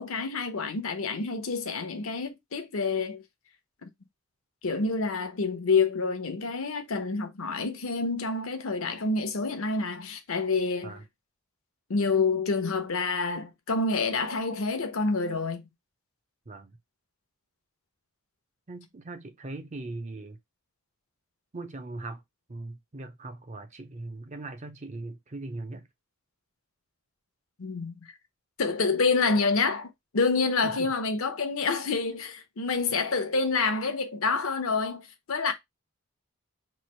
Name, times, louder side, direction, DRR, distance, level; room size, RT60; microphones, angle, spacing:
voice 1, 0.0-3.2 3.8-3.9 4.6-11.0 11.9-15.6 27.6-28.0 28.6-35.0 35.3-35.5, left 4 dB, 65° left, 0.7 m, -28 dB
voice 2, 16.5-16.8 18.7-20.4 21.5-22.2 22.5-25.9 30.6-30.9, right 2 dB, 30° right, 0.6 m, -40 dB
3.2 x 2.5 x 4.2 m
head